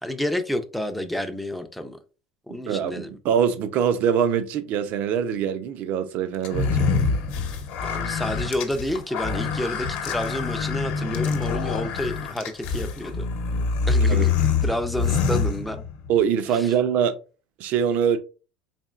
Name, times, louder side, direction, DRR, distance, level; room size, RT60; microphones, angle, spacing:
voice 1, 0.0-2.0 2.5-3.1 7.9-13.3 13.9-14.3 14.6-15.8 16.5-16.7, left 1 dB, ahead, 0.5 m, -29 dB
voice 2, 2.7-6.9 7.9-8.0 14.1-14.3 16.1-17.2 17.6-18.2, right 8 dB, 55° right, 0.6 m, -23 dB
sound 1, 6.4-16.1, left 5 dB, 60° left, 0.8 m, -25 dB
4.2 x 2.9 x 2.4 m
supercardioid pair, 125°, 3 cm